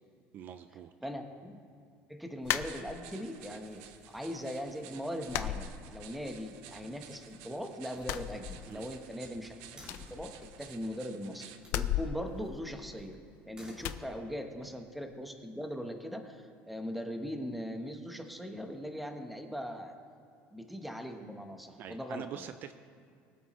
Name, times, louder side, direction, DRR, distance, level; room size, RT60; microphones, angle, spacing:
voice 1, 0.3-0.9 8.7-8.9 21.8-22.7, right 9 dB, 45° right, 10 dB, 0.4 m, -44 dB
voice 2, 1.0-1.5 2.1-13.2 13.4-19.9 20.5-22.5, equal, ahead, 4 dB, 1.0 m, -40 dB
sound 1, 2.4-3.3 3.7-4.4 4.7-4.8 5.3-6.4 6.7-7.5 7.9-9.1 9.4-9.5 9.8-11.0 11.6-13.3 13.8-14.1, left 11 dB, 60° left, 0.5 m, -37 dB
sound 2, 2.5-11.6, right 10 dB, 80° right, 0.7 m, -54 dB
Slam, 7.1-7.4 7.9-10.3 11.4-11.8 13.3-14.5, equal, 15° right, 2.6 m, -55 dB
23.0 x 8.2 x 3.1 m, 2.3 s
cardioid pair, 140°, 5 cm